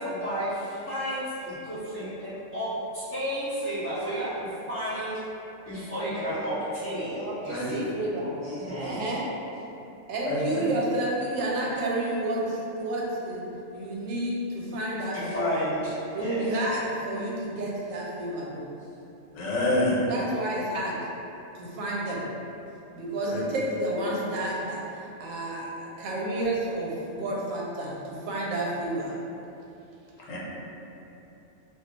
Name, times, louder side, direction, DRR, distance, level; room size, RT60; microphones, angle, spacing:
voice 1, 0.0-5.2 5.7-7.9 8.4-9.1 15.1-16.6, equal, 10° left, -13 dB, 1.0 m, -32 dB
voice 2, 7.2-8.3 8.8-9.2 10.1-13.4 13.7-15.6 16.1-18.7 20.0-21.0 21.6-22.2 22.9-29.2, right 1 dB, 85° right, -4 dB, 1.0 m, -30 dB
voice 3, 19.3-20.0 23.3-23.4 30.3-30.4, left 2 dB, 90° left, -5 dB, 1.1 m, -26 dB
2.4 x 2.3 x 3.8 m, 2.9 s
omnidirectional pair, 1.3 m